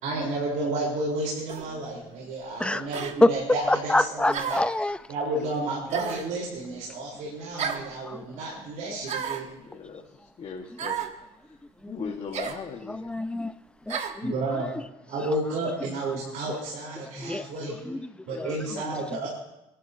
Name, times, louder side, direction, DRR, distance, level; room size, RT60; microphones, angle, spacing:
voice 1, 0.0-4.6 5.1-9.5 14.2-14.7 15.1-17.8 18.3-19.3, right 2 dB, 75° right, -3 dB, 4.2 m, -31 dB
sound 1, 1.5-1.7 2.9-3.2 4.3-4.8 5.9-6.3 7.6-7.9 9.0-9.5 10.8-11.2 12.3-12.6 13.9-14.2, right 7 dB, 60° right, 1.5 m, -32 dB
voice 2, 3.7-5.0 8.1-8.2 11.8-12.1 12.9-13.5 13.9-14.3 17.2-17.5 17.9-18.0 18.3-18.5 18.8-18.9, left 1 dB, 10° left, 12 dB, 0.7 m, -25 dB
voice 3, 9.6-11.0 11.9-13.1, left 6 dB, 50° left, 0 dB, 1.7 m, -38 dB
29.5 x 11.5 x 2.9 m, 0.90 s
supercardioid pair, 85°, 13 cm